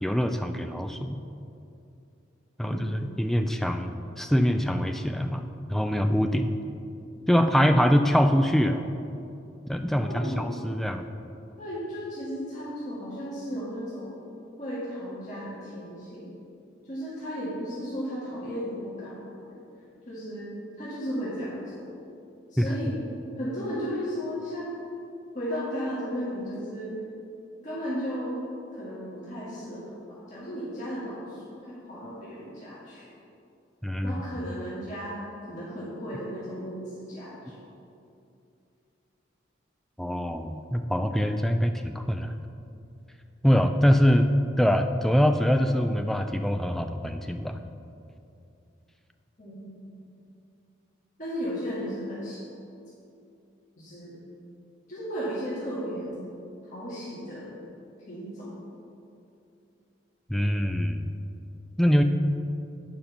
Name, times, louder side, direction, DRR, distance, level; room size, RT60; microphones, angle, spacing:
voice 1, 0.0-1.2 2.6-5.4 5.7-6.5 7.3-8.8 9.7-11.1 22.6-22.7 33.8-34.2 40.0-42.3 43.4-44.3 44.6-47.6 60.3-61.1 61.8-62.0, equal, ahead, 6 dB, 0.3 m, -24 dB
voice 2, 10.0-10.5 11.6-14.1 14.6-16.3 16.9-19.2 20.1-20.5 20.8-21.9 22.5-23.0 23.4-24.8 25.3-26.9 27.6-28.3 28.7-33.1 34.0-35.2 35.5-37.5 49.4-49.9 51.2-52.4 53.8-54.2 54.9-56.2 56.7-57.6 58.1-58.5, equal, 40° left, -10 dB, 2.0 m, -35 dB
9.2 x 5.1 x 5.7 m, 2.7 s
head